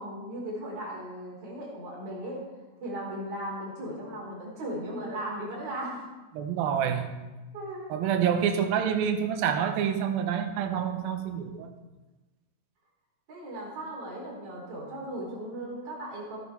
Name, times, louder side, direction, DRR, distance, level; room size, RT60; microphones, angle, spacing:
voice 1, 0.0-2.4 2.8-6.1 7.5-7.9 13.3-16.4, right 1 dB, 40° right, -5 dB, 5.0 m, -37 dB
voice 2, 6.3-7.1 7.9-11.7, right 8 dB, 75° right, 6 dB, 2.7 m, -27 dB
15.5 x 9.9 x 4.6 m, 1.1 s
omnidirectional pair, 4.4 m